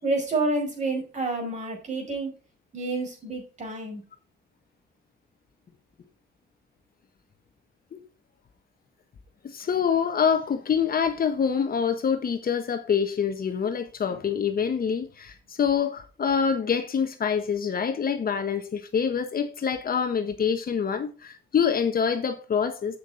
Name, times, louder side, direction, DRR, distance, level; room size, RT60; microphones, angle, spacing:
voice 1, 0.0-2.3 2.7-4.0, right 2 dB, 35° right, 5.2 m, -29 dB
voice 2, 9.4-23.0, left 7 dB, 45° left, 1.3 m, -26 dB
8.3 x 6.5 x 4.8 m
cardioid pair, 90°, 20 cm